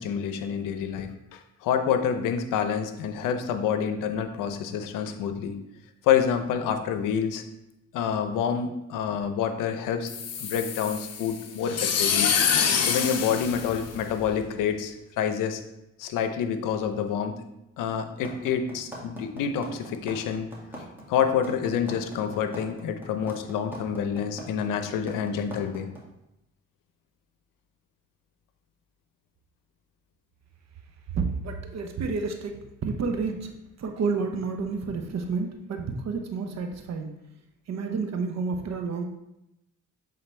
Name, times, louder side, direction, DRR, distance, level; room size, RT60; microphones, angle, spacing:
voice 1, 0.0-5.6 6.0-7.4 7.9-10.1 10.4-12.3 12.8-15.6 16.0-17.4 17.8-20.5 21.1-25.9, left 7 dB, 85° left, 8 dB, 0.7 m, -27 dB
sound 1, 10.1-14.4, left 7 dB, 55° left, 0.8 m, -26 dB
sound 2, 18.2-26.0, equal, 5° right, 2.1 m, -40 dB
voice 2, 31.1-33.5 33.8-37.1 37.7-39.0, right 4 dB, 60° right, 5 dB, 0.9 m, -30 dB
7.6 x 3.8 x 3.3 m, 0.88 s
cardioid pair, 80°, 31 cm